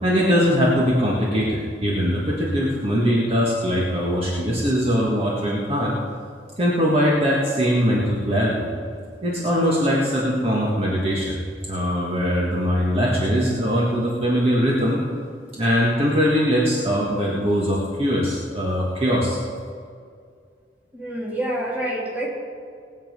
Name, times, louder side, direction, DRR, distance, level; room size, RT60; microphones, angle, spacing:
voice 1, 0.0-6.0 6.6-8.7 9.2-11.4 11.7-15.0 15.5-19.4, equal, 35° right, -5 dB, 1.7 m, -21 dB
voice 2, 20.9-22.3, right 1 dB, 10° right, -5 dB, 2.9 m, -27 dB
19.5 x 7.4 x 5.4 m, 2.2 s
head